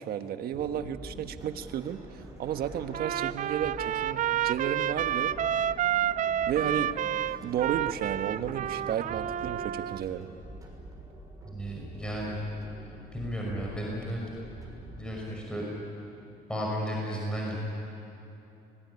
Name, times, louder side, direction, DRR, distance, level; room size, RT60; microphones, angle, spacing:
voice 1, 0.0-5.3 6.5-6.9 7.4-10.3, right 9 dB, 65° right, 9 dB, 1.4 m, -32 dB
sound 1, 0.5-15.0, right 1 dB, 20° right, 6.1 m, -46 dB
Trumpet, 2.9-10.0, right 10 dB, 50° right, 0.5 m, -30 dB
voice 2, 11.4-12.4 13.1-14.2 15.0-15.7 16.5-17.6, equal, 5° left, -3 dB, 5.8 m, -33 dB
26.0 x 20.5 x 9.8 m, 2.9 s
cardioid pair, 110°, 17 cm